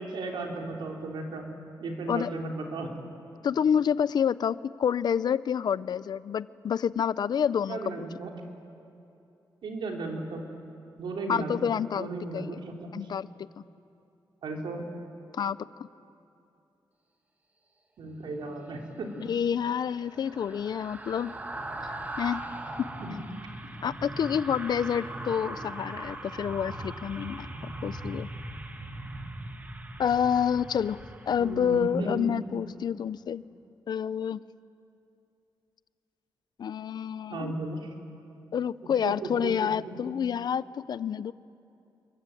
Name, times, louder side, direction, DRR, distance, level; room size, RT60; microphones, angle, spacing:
voice 1, 0.0-1.4 1.8-2.9 7.7-8.3 9.6-10.4 11.0-11.6 11.9-13.1 14.4-14.8 18.0-19.2 23.0-23.2 31.4-32.3 37.3-37.9 39.0-40.0, right 2 dB, 75° right, 1 dB, 3.7 m, -35 dB
voice 2, 3.4-7.8 11.3-12.1 12.3-12.6 12.9-13.3 15.3-15.9 19.2-21.3 22.2-22.4 22.8-22.9 23.8-27.5 27.8-28.3 30.0-33.4 33.9-34.4 36.6-37.5 38.5-41.3, left 8 dB, 60° left, 17 dB, 0.5 m, -28 dB
sound 1, 19.0-32.4 32.7-32.9, right 1 dB, 20° right, 1.8 m, -40 dB
25.5 x 22.5 x 9.1 m, 2.7 s
wide cardioid pair, 140°, 8 cm